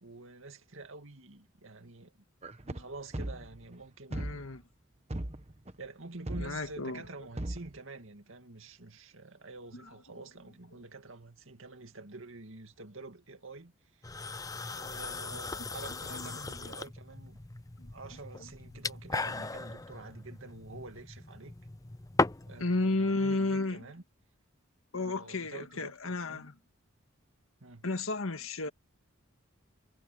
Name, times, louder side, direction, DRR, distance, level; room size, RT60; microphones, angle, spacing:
voice 1, 0.0-2.2 2.6-4.3 5.8-13.7 14.0-14.1 14.7-17.4 17.9-21.6 22.5-24.0 25.0-26.4 27.6-27.9, right 3 dB, 70° right, 2.3 m, -48 dB
sound 1, 2.4-3.7 4.1-4.5 5.1-5.7 6.3-6.7 7.0-7.1 7.4-7.8, right 1 dB, 30° right, 1.3 m, -37 dB
voice 2, 4.1-4.6 6.4-7.0 9.7-9.9 16.1-16.3 16.6-16.7 17.8-17.9 18.4-18.5 22.6-23.8 24.9-26.6 27.8-28.7, left 2 dB, 80° left, 1.8 m, -33 dB
sound 2, 14.0-22.6, left 3 dB, 15° left, 0.6 m, -37 dB
head